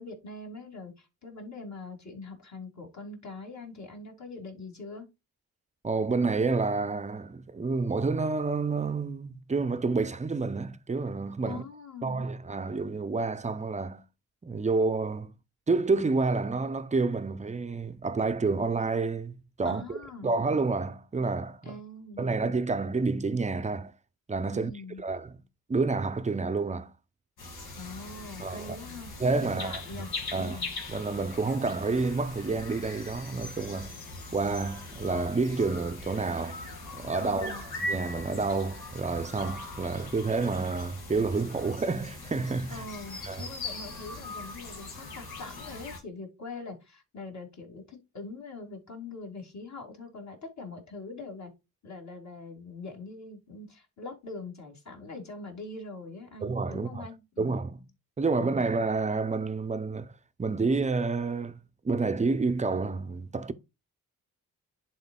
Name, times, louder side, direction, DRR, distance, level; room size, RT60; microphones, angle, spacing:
voice 1, 0.0-5.1 11.5-12.3 19.6-20.3 21.6-22.3 24.5-25.0 27.8-29.1 29.4-30.8 37.2-37.6 42.7-51.5 51.8-57.5 58.3-58.6, left 3 dB, 50° left, 2.5 m, -43 dB
voice 2, 5.8-11.6 12.0-14.0 14.4-15.3 15.7-21.8 22.2-23.9 24.3-24.7 25.0-25.4 25.7-26.9 28.4-28.8 29.2-30.0 30.3-30.6 30.9-33.9 34.3-36.6 36.9-37.6 37.9-42.8 43.2-43.5 56.4-57.0 57.4-57.8 58.2-60.1 60.4-61.6 61.8-63.5, right 3 dB, 20° right, 0.6 m, -29 dB
sound 1, 27.4-46.0, left 2 dB, 85° left, 2.2 m, -40 dB
11.0 x 3.9 x 2.3 m
cardioid pair, 70°, 37 cm